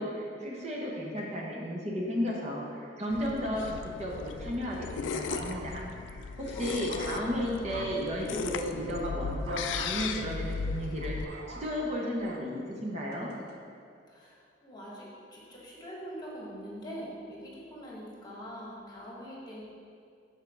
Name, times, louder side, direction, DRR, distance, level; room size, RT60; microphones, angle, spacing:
voice 1, 0.0-13.3, equal, 35° right, -3 dB, 0.9 m, -34 dB
sound 1, 3.1-11.2, left 5 dB, 85° left, 0.3 m, -37 dB
sound 2, 4.6-6.0 6.4-8.1 9.5-9.9 10.5-12.5 13.1-13.5, right 2 dB, 60° right, 0.6 m, -45 dB
voice 2, 6.5-7.2 7.6-7.7 14.1-19.6, equal, 25° left, -5 dB, 1.5 m, -44 dB
5.6 x 4.5 x 6.2 m, 2.3 s
head